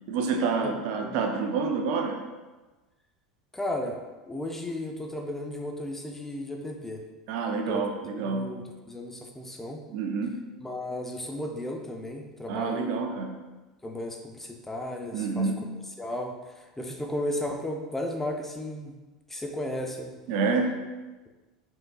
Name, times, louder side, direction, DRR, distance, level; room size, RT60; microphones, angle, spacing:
voice 1, 0.1-2.2 7.3-8.5 9.9-10.4 12.5-13.4 15.1-15.6 20.3-20.8, right 4 dB, 55° right, 4 dB, 0.5 m, -28 dB
voice 2, 3.5-4.0 4.3-7.0 7.7-7.8 8.1-9.8 10.6-13.0 13.8-15.5 16.0-18.9 19.3-20.2, left 1 dB, 10° left, 2 dB, 0.6 m, -34 dB
5.2 x 3.8 x 2.3 m, 1.2 s
figure-of-eight pair, 80°, 3 cm